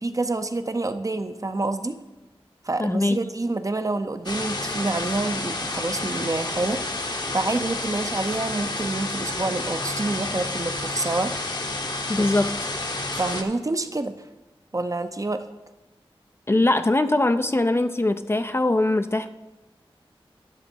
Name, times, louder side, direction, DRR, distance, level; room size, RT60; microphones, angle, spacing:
voice 1, 0.0-2.0 2.6-6.8 7.3-11.3 12.2-12.3 13.1-14.1 14.7-15.4, right 2 dB, 35° right, 9 dB, 0.6 m, -27 dB
voice 2, 2.8-3.2 12.1-12.6 16.5-19.3, left 2 dB, 25° left, 10 dB, 0.4 m, -21 dB
sound 1, 4.3-13.4, left 2 dB, 45° left, 1.0 m, -30 dB
10.5 x 6.5 x 4.4 m, 1.1 s
wide cardioid pair, 65°, 10 cm